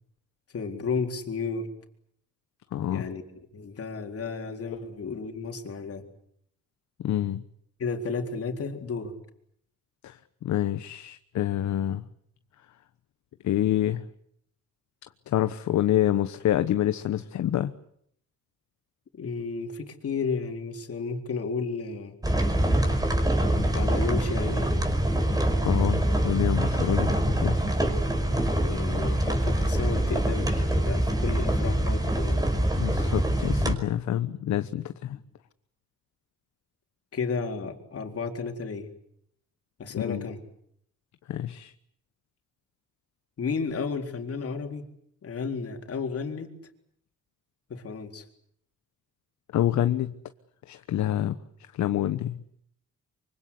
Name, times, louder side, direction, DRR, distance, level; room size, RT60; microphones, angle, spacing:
voice 1, 0.5-1.7 2.9-3.2 3.5-6.0 7.8-9.1 19.2-22.2 23.7-24.7 28.6-32.4 35.1-35.2 37.1-38.9 39.8-40.4 43.4-44.8 45.2-46.5 47.7-48.2, left 4 dB, 50° left, 4 dB, 4.0 m, -32 dB
voice 2, 2.7-3.1 7.0-7.4 10.0-12.1 13.4-14.1 15.3-17.7 25.6-27.7 32.8-35.2 40.0-40.3 41.3-41.7 49.5-50.1 50.7-51.4 51.7-52.4, left 12 dB, 70° left, 10 dB, 1.1 m, -27 dB
sound 1, 22.2-33.7, right 1 dB, 10° right, 5.3 m, -24 dB
25.0 x 24.5 x 8.3 m, 0.70 s
cardioid pair, 90°, 30 cm